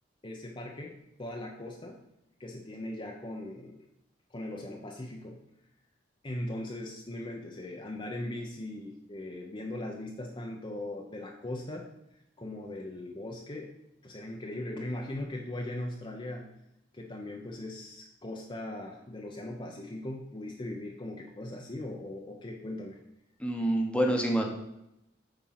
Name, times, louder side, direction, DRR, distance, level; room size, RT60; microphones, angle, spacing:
voice 1, 0.2-0.9 1.2-2.0 2.4-3.8 4.3-5.4 6.2-11.9 12.4-13.7 14.0-16.5 16.9-23.0, left 1 dB, 25° left, 1 dB, 0.8 m, -39 dB
voice 2, 23.4-24.4, right 1 dB, 5° left, 1 dB, 1.1 m, -27 dB
8.7 x 4.4 x 5.8 m, 0.83 s
head